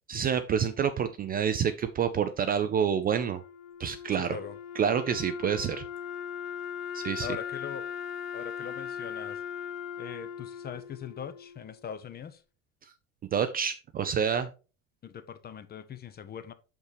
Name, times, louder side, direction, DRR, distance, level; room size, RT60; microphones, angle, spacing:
voice 1, 0.1-3.4 3.8-4.4 4.8-5.8 6.9-7.3 13.3-14.5, right 8 dB, 25° right, 0.4 m, -28 dB
Wind instrument woodwind instrument, 3.0-12.1, left 8 dB, 50° left, 1.4 m, -39 dB
voice 2, 4.1-4.6 7.2-7.9 8.3-9.4 10.0-12.4 15.0-16.5, left 8 dB, 25° left, 0.6 m, -41 dB
6.4 x 5.9 x 3.4 m
figure-of-eight pair, 70°, 41 cm